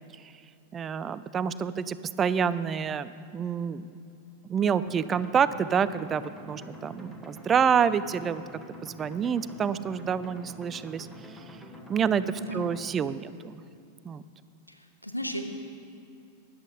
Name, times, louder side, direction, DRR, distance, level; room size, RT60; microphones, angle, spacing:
voice 1, 0.7-3.9 4.5-8.4 8.8-11.1 11.9-12.2 12.5-13.6 14.0-14.2, right 7 dB, 25° right, 15 dB, 0.4 m, -27 dB
sound 1, 4.9-12.9, equal, 5° left, 1.8 m, -46 dB
voice 2, 12.4-12.7 14.7-15.4, equal, 85° left, 5 dB, 1.0 m, -35 dB
14.0 x 10.5 x 5.0 m, 2.5 s
figure-of-eight pair, 90°, 0 cm